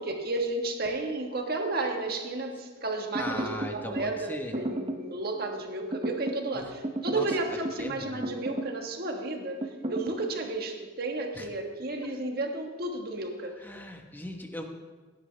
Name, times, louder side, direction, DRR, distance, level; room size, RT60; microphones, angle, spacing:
voice 1, 0.0-6.6 7.0-9.6 9.9-13.6, right 2 dB, 55° right, 3 dB, 1.5 m, -32 dB
voice 2, 3.1-4.5 6.5-6.7 7.1-7.3 7.8-8.3 11.3-11.5 12.0-12.1 13.6-14.7, left 1 dB, 10° left, 3 dB, 1.1 m, -38 dB
sound 1, 3.1-4.1 4.5-5.1 5.9-6.5 6.8-7.9 8.2-8.8 9.6-10.1, right 1 dB, 30° right, 0.8 m, -33 dB
16.5 x 10.0 x 3.4 m, 1.4 s
head